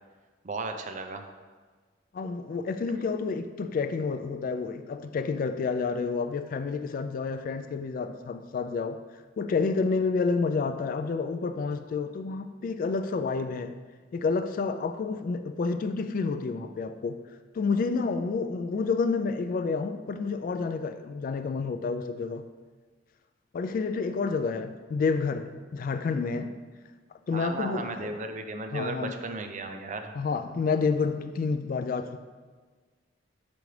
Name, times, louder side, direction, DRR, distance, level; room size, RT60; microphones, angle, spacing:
voice 1, 0.4-1.3 27.3-30.2, right 3 dB, 40° right, 5 dB, 0.5 m, -35 dB
voice 2, 2.1-9.0 9.4-13.7 14.1-17.2 17.5-22.4 23.5-26.6 27.3-28.1 28.7-29.1 30.1-32.2, left 4 dB, 50° left, 9 dB, 0.3 m, -29 dB
5.8 x 5.1 x 3.2 m, 1.4 s
head